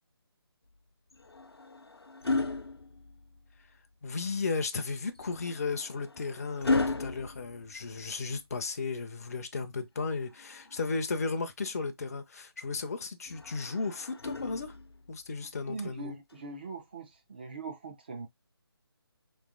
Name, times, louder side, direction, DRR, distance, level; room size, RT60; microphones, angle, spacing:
sound 1, 1.1-3.6 5.2-8.3 10.1-11.3 13.3-15.1 16.3-16.5, left 3 dB, 75° left, 0.7 m, -35 dB
voice 1, 4.0-14.8 15.1-16.1, left 4 dB, 40° left, 0.5 m, -35 dB
voice 2, 15.6-18.3, right 3 dB, 25° right, 0.5 m, -41 dB
3.2 x 3.1 x 3.6 m
figure-of-eight pair, 155°, 13 cm